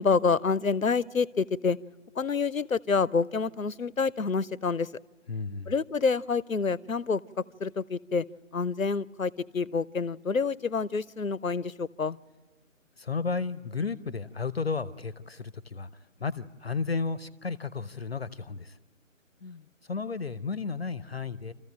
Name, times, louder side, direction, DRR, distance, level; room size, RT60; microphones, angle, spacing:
voice 1, 0.0-1.8 2.2-4.9 5.7-7.2 7.6-8.3 8.5-12.2 19.4-19.6, left 5 dB, 90° left, 22 dB, 0.7 m, -27 dB
voice 2, 5.3-5.7 13.0-15.9 16.2-18.8 19.8-21.5, left 4 dB, 50° left, 17 dB, 0.7 m, -33 dB
27.5 x 14.5 x 9.0 m, 1.3 s
figure-of-eight pair, 150°, 40 cm